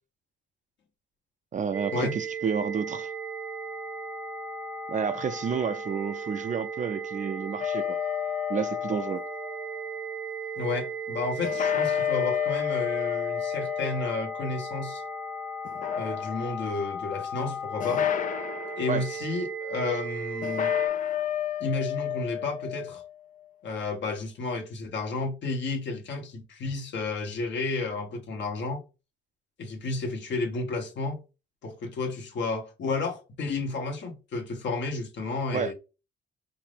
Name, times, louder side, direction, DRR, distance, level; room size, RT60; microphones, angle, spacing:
voice 1, 1.5-3.1 4.9-8.0 8.5-9.3 18.9-19.0 35.5-35.7, right 6 dB, 40° right, 0.5 m, -30 dB
sound 1, 1.7-20.9, right 2 dB, 10° right, 0.7 m, -36 dB
sound 2, 7.6-9.7 11.4-15.2 15.7-16.7 17.8-18.9 20.4-23.1, left 10 dB, 40° left, 0.4 m, -30 dB
voice 2, 10.6-15.0 15.9-18.1 18.8-20.7 21.6-23.0 23.6-28.8 29.6-31.2 31.6-35.7, left 3 dB, 65° left, 1.3 m, -32 dB
4.8 x 2.6 x 3.5 m
cardioid pair, 90°, 20 cm